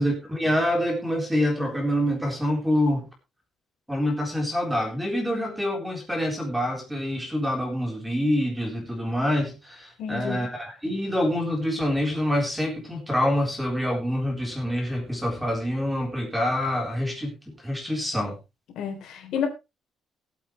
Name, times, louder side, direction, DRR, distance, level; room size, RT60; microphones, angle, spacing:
voice 1, 0.0-3.1 3.9-18.4, left 1 dB, 5° right, 2 dB, 3.8 m, -26 dB
voice 2, 10.0-10.4 18.8-19.5, left 8 dB, 75° left, 4 dB, 3.6 m, -30 dB
20.0 x 8.4 x 3.1 m, 0.25 s
cardioid pair, 165°, 0 cm